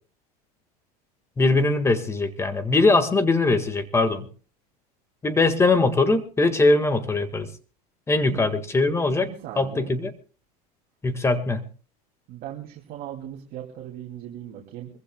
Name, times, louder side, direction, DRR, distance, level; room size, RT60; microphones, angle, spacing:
voice 1, 1.4-4.3 5.2-7.5 8.1-9.3 9.5-10.1 11.0-11.6, left 3 dB, 15° left, 9 dB, 1.7 m, -21 dB
voice 2, 9.2-9.9 12.3-14.9, right 11 dB, 50° right, -1 dB, 2.6 m, -38 dB
25.0 x 15.0 x 2.3 m, 0.38 s
supercardioid pair, 130°, 20 cm